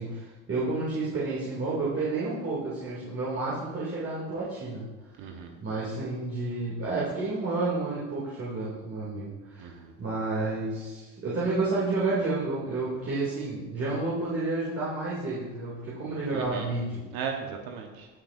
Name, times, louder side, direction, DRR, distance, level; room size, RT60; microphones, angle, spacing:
voice 1, 0.0-4.9 5.6-9.7 10.0-17.0, right 3 dB, 35° right, -8 dB, 2.6 m, -30 dB
voice 2, 5.2-5.6 9.6-9.9 16.3-16.7 17.1-18.1, right 6 dB, 65° right, 3 dB, 1.1 m, -36 dB
14.5 x 5.8 x 2.6 m, 1.2 s
supercardioid pair, 85°, 39 cm